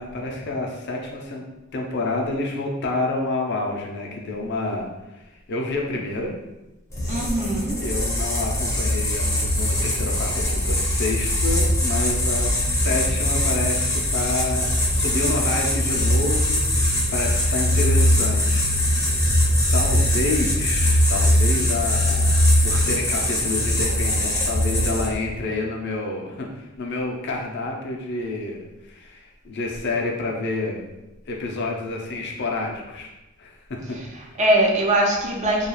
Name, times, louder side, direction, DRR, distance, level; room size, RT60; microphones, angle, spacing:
voice 1, 0.0-1.4 1.7-6.3 7.8-19.3 19.7-30.8 31.3-33.1 33.4-33.6, left 2 dB, 55° left, 0 dB, 0.5 m, -29 dB
sound 1, 6.9-25.3, left 1 dB, 15° left, 0.6 m, -21 dB
voice 2, 7.1-7.8 33.9-35.7, right 1 dB, 35° right, -1 dB, 0.5 m, -22 dB
2.3 x 2.3 x 3.0 m, 1.0 s
head